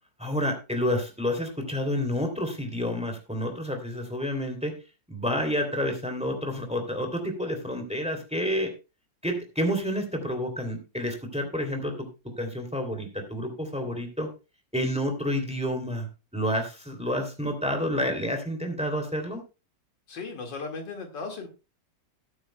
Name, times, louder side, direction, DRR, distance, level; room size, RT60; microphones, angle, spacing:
voice 1, 0.2-4.7 5.1-8.7 9.2-12.1 12.4-14.3 14.7-16.1 16.3-19.4, equal, 5° right, 4 dB, 2.7 m, -29 dB
voice 2, 20.1-21.5, left 4 dB, 85° left, 3 dB, 2.7 m, -36 dB
17.5 x 9.5 x 2.2 m, 0.29 s
omnidirectional pair, 1.9 m